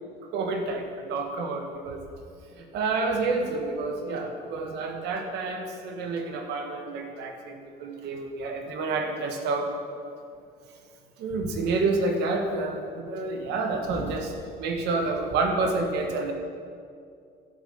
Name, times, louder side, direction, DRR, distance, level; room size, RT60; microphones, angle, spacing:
voice 1, 0.3-2.0 2.6-7.5 7.8-9.7 11.2-14.3 14.6-16.3, right 3 dB, 80° right, 3 dB, 1.4 m, -29 dB
10.0 x 5.4 x 6.9 m, 2.4 s
cardioid pair, 110°, 17 cm